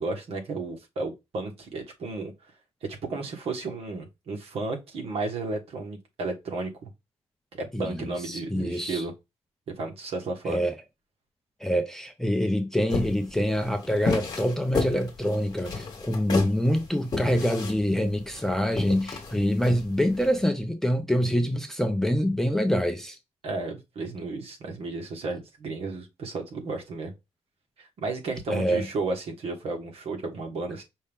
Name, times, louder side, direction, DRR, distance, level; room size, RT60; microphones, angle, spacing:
voice 1, 0.0-2.3 3.1-6.9 7.6-9.1 9.8-10.6 23.4-27.1 27.8-30.8, right 3 dB, 60° right, 1.5 m, -33 dB
voice 2, 7.7-9.0 10.5-10.8 11.6-23.2 28.5-28.9, equal, 5° left, 0.5 m, -26 dB
sound 1, 12.9-20.3, left 3 dB, 35° left, 1.5 m, -31 dB
5.3 x 2.6 x 3.5 m
wide cardioid pair, 170°, 11 cm